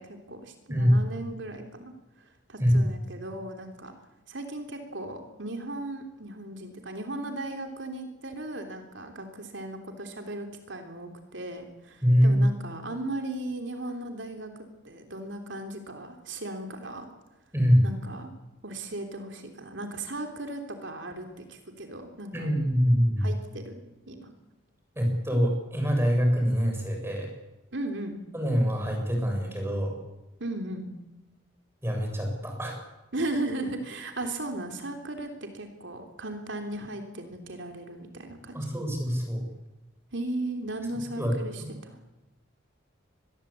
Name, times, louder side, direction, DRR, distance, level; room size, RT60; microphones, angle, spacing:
voice 1, 0.0-3.9 4.3-17.1 17.8-18.3 18.6-22.5 23.2-24.3 27.7-28.2 30.4-30.9 33.1-38.7 40.1-42.0, right 2 dB, 60° right, 4 dB, 3.4 m, -37 dB
voice 2, 0.7-1.0 2.6-2.9 12.0-12.4 17.5-17.9 22.3-23.3 25.0-27.3 28.3-29.9 31.8-32.8 38.5-39.5 41.2-41.7, equal, 10° right, 2 dB, 6.9 m, -24 dB
25.5 x 21.0 x 8.5 m, 1.0 s
head